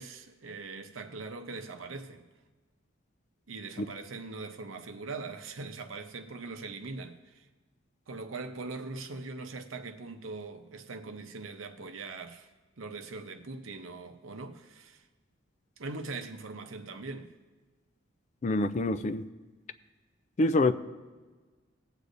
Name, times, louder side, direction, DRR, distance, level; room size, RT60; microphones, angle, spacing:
voice 1, 0.0-2.3 3.5-7.5 8.1-12.5 12.8-15.1 15.8-17.3, right 3 dB, 80° right, 0.8 m, -41 dB
voice 2, 18.4-19.2 20.4-20.7, left 2 dB, 35° left, 0.4 m, -25 dB
18.0 x 8.2 x 2.6 m
head